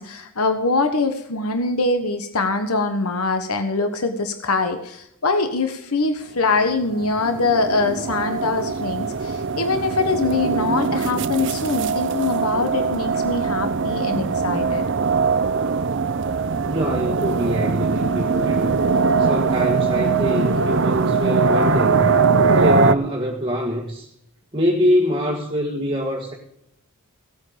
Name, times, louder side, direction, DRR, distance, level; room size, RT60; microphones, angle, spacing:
voice 1, 0.0-14.9, left 3 dB, 90° left, 7 dB, 1.3 m, -23 dB
sound 1, 6.7-23.0, right 4 dB, 55° right, 0.6 m, -21 dB
voice 2, 16.7-18.7 19.2-22.1 22.5-24.1 24.5-26.3, equal, 25° right, -2 dB, 1.7 m, -24 dB
17.0 x 8.7 x 5.1 m, 0.78 s
head